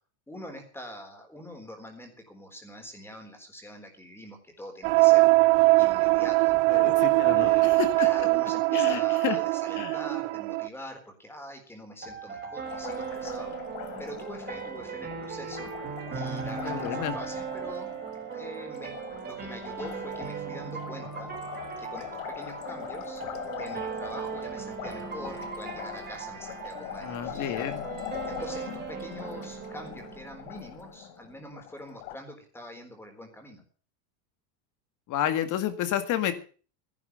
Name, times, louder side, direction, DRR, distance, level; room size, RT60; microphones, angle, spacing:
voice 1, 0.3-5.3 5.8-6.6 7.3-13.6 14.0-15.7 16.1-18.0 18.3-21.3 21.8-23.2 23.6-27.7 28.3-33.6, equal, 5° left, 4 dB, 4.0 m, -44 dB
sound 1, 4.8-10.7, right 23 dB, 55° right, 0.6 m, -22 dB
voice 2, 6.7-8.1 8.7-9.4 9.8-9.9 16.6-17.1 27.0-27.8 35.1-36.3, left 11 dB, 40° left, 10 dB, 2.0 m, -30 dB
sound 2, 12.0-31.0, right 7 dB, 20° right, 4.2 m, -38 dB
Liquid, 12.6-32.2, left 15 dB, 70° left, 1.4 m, -42 dB
14.5 x 11.0 x 6.7 m, 0.40 s
supercardioid pair, 155°, 48 cm